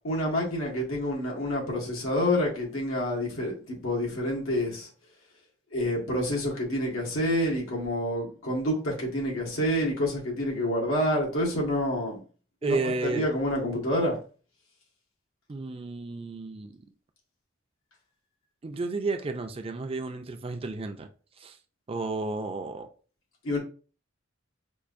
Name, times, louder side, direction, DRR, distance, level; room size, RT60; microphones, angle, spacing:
voice 1, 0.0-4.9 5.7-12.2 12.6-12.8 13.0-14.1 23.4-23.6, left 1 dB, 85° left, 1.4 m, -28 dB
voice 2, 12.6-13.3 15.5-16.8 18.6-21.1 21.4-21.6 21.9-22.9, right 3 dB, 30° right, 0.4 m, -32 dB
4.7 x 2.5 x 2.5 m
head